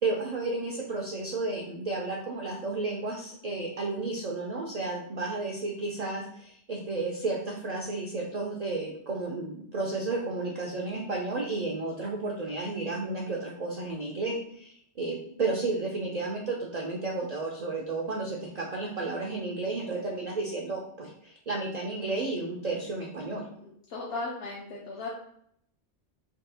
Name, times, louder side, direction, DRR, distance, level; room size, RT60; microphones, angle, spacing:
voice 1, 0.0-23.5, right 3 dB, 55° right, -1 dB, 0.4 m, -32 dB
voice 2, 23.6-25.1, left 3 dB, 65° left, -4 dB, 0.8 m, -36 dB
3.6 x 2.3 x 2.7 m, 0.70 s
omnidirectional pair, 1.2 m